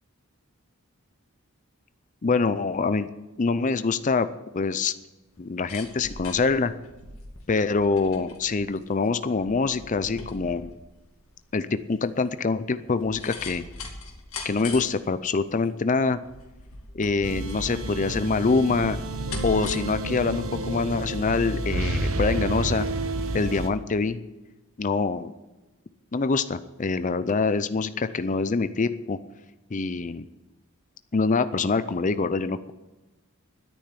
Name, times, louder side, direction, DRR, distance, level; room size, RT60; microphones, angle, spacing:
voice 1, 2.2-3.1 3.4-4.3 4.5-4.9 5.4-6.7 7.5-10.7 11.5-13.6 14.4-16.2 16.9-19.0 19.4-22.9 23.3-24.2 24.8-25.3 26.1-29.2 29.7-30.3 31.1-32.7, left 4 dB, 35° left, 13 dB, 0.5 m, -25 dB
sound 1, 5.3-23.0 23.3-23.4, left 3 dB, 65° left, 2.6 m, -42 dB
sound 2, 17.2-23.7, right 2 dB, 65° right, 1.2 m, -30 dB
10.0 x 9.0 x 9.7 m, 1.1 s
head